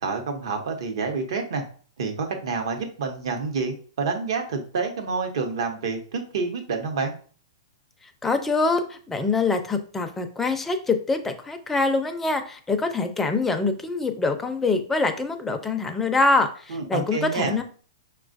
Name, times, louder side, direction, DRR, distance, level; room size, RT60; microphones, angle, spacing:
voice 1, 0.0-1.6 2.0-7.1 16.7-17.6, right 4 dB, 70° right, 4 dB, 0.9 m, -28 dB
voice 2, 8.2-17.6, left 3 dB, 10° left, 6 dB, 0.5 m, -24 dB
5.4 x 2.4 x 2.5 m, 0.42 s
hypercardioid pair, 130°, 3 cm